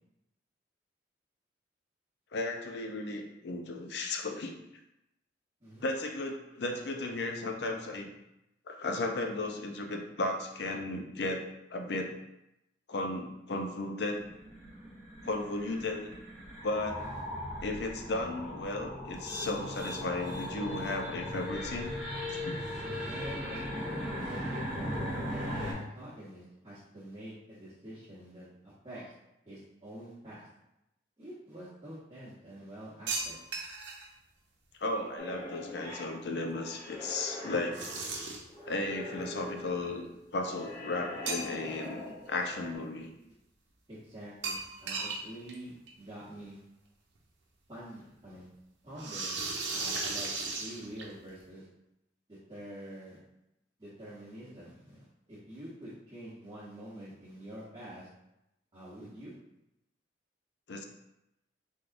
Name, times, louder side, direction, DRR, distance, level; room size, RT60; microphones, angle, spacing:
voice 1, 2.3-4.5 5.8-8.1 8.7-11.4 11.7-12.1 12.9-14.2 15.2-16.1 16.6-17.0 17.6-21.9 22.2-22.5 34.8-37.8 38.7-40.1 40.3-43.1 60.7-60.8, left 2 dB, 65° left, 4 dB, 0.5 m, -35 dB
sound 1, 14.2-25.7, left 1 dB, 5° right, 1.2 m, -38 dB
voice 2, 22.8-29.1 29.4-30.5 31.2-33.4 43.9-46.6 47.7-48.5 48.8-49.4 49.7-50.3 50.6-51.6 52.3-53.2 53.8-58.1 58.7-59.3, right 1 dB, 25° right, -13 dB, 1.0 m, -46 dB
sound 2, 33.1-34.1 37.7-38.6 41.3-41.8 42.2-42.3 44.4-45.2 45.5-45.6 45.9-46.0 47.2-47.3 49.0-51.3, right 3 dB, 85° right, 0.7 m, -36 dB
sound 3, 35.2-42.8, left 1 dB, 15° left, 0.6 m, -44 dB
3.6 x 3.4 x 2.5 m, 0.88 s
head